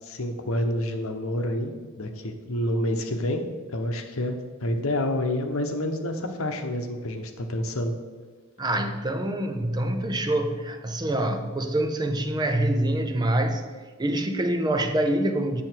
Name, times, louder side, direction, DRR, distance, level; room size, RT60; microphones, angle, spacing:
voice 1, 0.0-3.4 3.7-7.9, left 1 dB, 65° left, 5 dB, 1.0 m, -28 dB
voice 2, 8.6-13.6 14.0-15.6, right 1 dB, 20° right, 6 dB, 0.6 m, -25 dB
8.8 x 7.1 x 4.5 m, 1.5 s
head